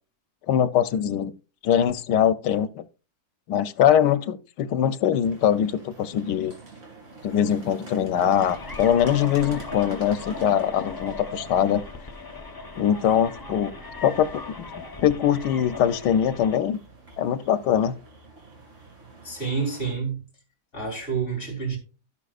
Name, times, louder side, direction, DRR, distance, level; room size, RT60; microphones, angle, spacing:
voice 1, 0.5-1.3 1.6-2.8 3.5-6.5 7.2-11.8 12.8-13.7 14.0-14.7 15.0-16.8 17.2-17.9, left 9 dB, 90° left, 1.3 m, -22 dB
sound 1, 5.2-19.9, right 3 dB, 45° right, 3.1 m, -46 dB
sound 2, 8.3-16.6, left 3 dB, 20° left, 0.5 m, -38 dB
voice 2, 19.2-20.2 20.7-21.8, right 5 dB, 45° left, 4.0 m, -28 dB
16.0 x 5.8 x 2.4 m
omnidirectional pair, 1.8 m